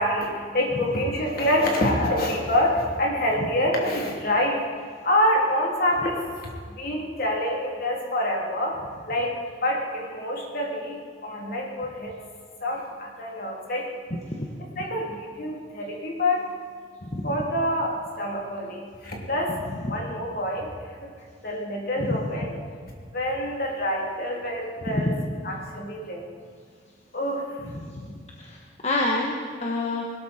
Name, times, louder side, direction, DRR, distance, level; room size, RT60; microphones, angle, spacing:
voice 1, 0.0-4.6 5.0-8.8 9.1-12.2 12.6-14.0 14.6-16.5 17.2-19.6 19.9-21.1 21.4-22.6 23.1-25.2 25.4-26.3 27.1-27.6, left 1 dB, 55° left, -1 dB, 3.1 m, -26 dB
voice 2, 27.7-28.1 28.4-28.6 28.8-30.0, left 2 dB, 40° left, 0 dB, 1.3 m, -27 dB
20.5 x 13.0 x 4.4 m, 2.1 s
head